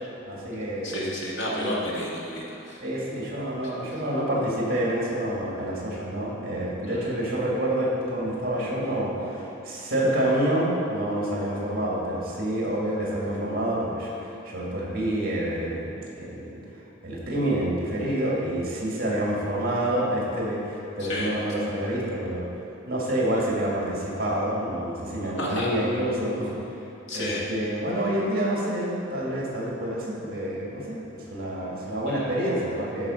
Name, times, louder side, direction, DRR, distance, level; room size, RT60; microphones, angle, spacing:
voice 1, 0.3-1.1 1.6-1.8 2.8-16.6 17.0-22.5 22.9-26.5 27.1-33.1, right 1 dB, 45° right, -5 dB, 2.2 m, -28 dB
voice 2, 0.8-2.8 3.6-3.7 6.9-7.0 21.0-21.3 25.4-25.7 27.1-27.4 32.1-32.2, left 1 dB, 75° left, -5 dB, 1.9 m, -31 dB
11.5 x 4.9 x 5.6 m, 2.8 s
head